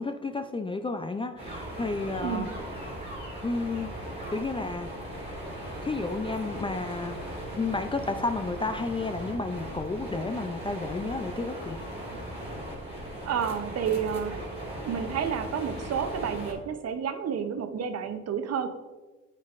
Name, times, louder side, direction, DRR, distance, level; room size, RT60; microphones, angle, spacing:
voice 1, 0.0-2.5 3.4-3.9 4.3-5.2 5.8-7.2 7.6-11.8, left 3 dB, 20° left, 7 dB, 0.4 m, -32 dB
sound 1, 1.4-16.5, right 1 dB, 20° right, 2.0 m, -38 dB
voice 2, 2.2-2.5 13.3-14.4 14.8-18.7, right 7 dB, 55° right, 8 dB, 0.7 m, -30 dB
9.3 x 4.5 x 2.5 m, 1.2 s
cardioid pair, 90°, 30 cm